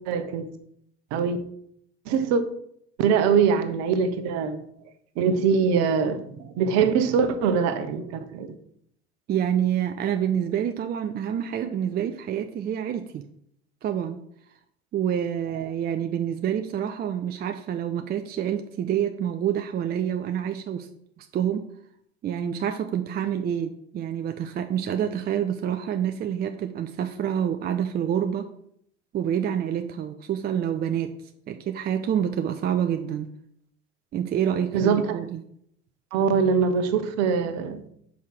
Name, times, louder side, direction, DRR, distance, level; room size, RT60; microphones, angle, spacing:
voice 1, 0.1-0.5 1.1-1.4 2.1-2.4 3.0-4.6 5.2-8.5 34.7-35.2 36.1-37.9, right 6 dB, 55° right, 1.0 m, -23 dB
voice 2, 9.3-13.3 13.8-14.2 14.9-20.9 21.2-21.7 22.2-28.5 29.1-31.2 31.5-33.3 34.1-35.4, right 9 dB, 30° right, 0.5 m, -27 dB
5.5 x 4.9 x 6.0 m
figure-of-eight pair, 70°, 33 cm